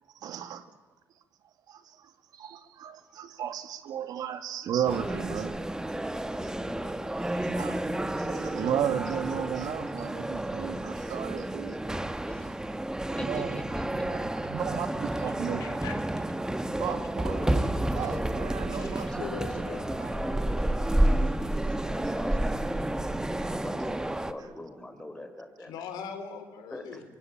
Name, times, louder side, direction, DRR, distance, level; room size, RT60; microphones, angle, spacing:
voice 1, 0.2-0.6 1.7-5.6 7.3-11.8 13.2-13.6 14.0-15.7 16.8-19.3 20.0-20.1, right 9 dB, 70° right, 9 dB, 2.2 m, -34 dB
sound 1, 4.9-24.3, right 1 dB, 10° right, 1.6 m, -30 dB
voice 2, 5.9-7.0 12.2-14.1 17.2-17.5 19.0-19.4 19.7-25.7 26.7-27.0, left 1 dB, 15° left, 6 dB, 6.2 m, -43 dB
voice 3, 15.6-16.0 18.8-19.9 25.6-27.0, left 6 dB, 85° left, 7 dB, 3.9 m, -40 dB
24.5 x 24.0 x 8.9 m, 1.2 s
cardioid pair, 80°, 7 cm